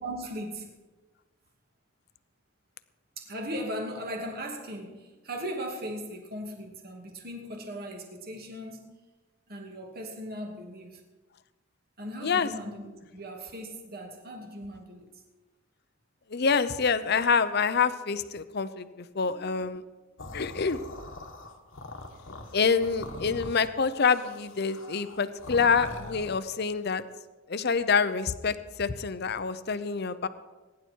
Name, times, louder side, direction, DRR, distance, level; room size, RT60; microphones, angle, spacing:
voice 1, 0.0-0.7 3.2-8.9 9.5-11.0 12.0-15.1 19.2-19.6 24.8-25.0, equal, 50° right, 2 dB, 2.5 m, -38 dB
voice 2, 16.3-19.8 20.3-20.8 22.5-27.0 27.5-30.3, left 5 dB, 55° left, 12 dB, 0.7 m, -26 dB
sound 1, 20.2-26.5, left 2 dB, 90° left, 1.6 m, -42 dB
22.5 x 10.5 x 4.6 m, 1.2 s
head